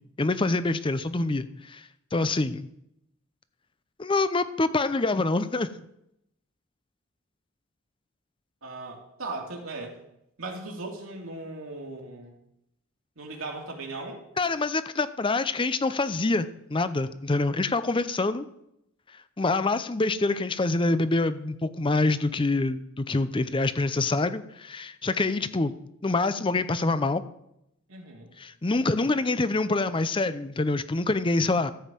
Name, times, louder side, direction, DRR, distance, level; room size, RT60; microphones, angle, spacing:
voice 1, 0.2-2.7 4.0-5.7 14.4-18.5 19.4-25.7 26.0-27.2 28.4-31.7, left 2 dB, 25° left, 13 dB, 0.5 m, -26 dB
voice 2, 8.6-10.0 10.4-12.3 13.2-14.2 27.9-28.3, right 2 dB, 80° right, 0 dB, 2.5 m, -38 dB
13.5 x 5.4 x 7.5 m, 0.80 s
head